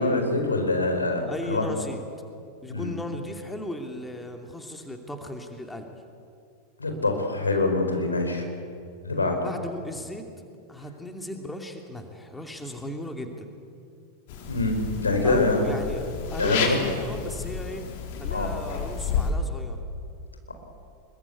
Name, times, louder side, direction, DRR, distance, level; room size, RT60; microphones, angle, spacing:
voice 1, 0.0-1.7 2.7-2.9 6.8-8.5 9.0-9.4 14.5-15.7 16.4-16.7 18.3-18.5, left 2 dB, 80° left, 4 dB, 4.5 m, -24 dB
voice 2, 1.3-2.0 2.6-6.0 9.4-10.2 10.7-13.5 15.2-17.8 18.1-19.8, left 1 dB, 5° left, 4 dB, 2.6 m, -36 dB
sound 1, 14.3-19.3, left 6 dB, 50° left, 4.3 m, -31 dB
25.0 x 22.5 x 8.3 m, 2.4 s
figure-of-eight pair, 90°, 0 cm